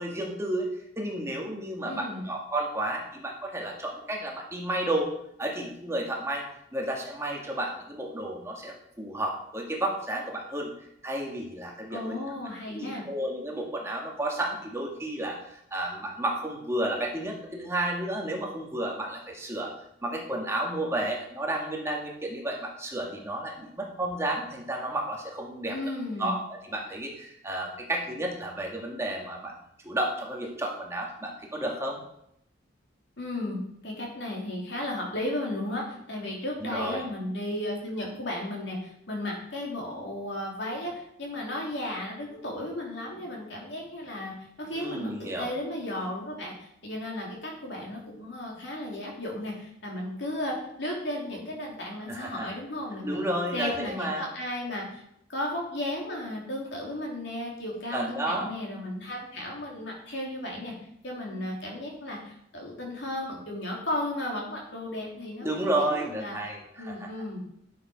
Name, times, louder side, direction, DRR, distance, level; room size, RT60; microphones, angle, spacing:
voice 1, 0.0-5.1 5.4-6.4 6.7-10.7 11.0-12.2 12.7-19.7 20.0-25.8 26.2-29.5 29.8-32.0 36.6-37.0 44.7-45.5 52.1-52.5 53.0-54.2 57.9-58.5 65.4-67.1, right 1 dB, 15° right, -1 dB, 1.7 m, -32 dB
voice 2, 1.8-2.3 11.9-13.1 25.7-26.4 33.2-53.2 53.5-55.0 55.3-60.7 61.0-66.4 66.8-67.4, left 1 dB, 65° left, -1 dB, 3.2 m, -34 dB
11.5 x 6.8 x 5.1 m, 0.74 s
head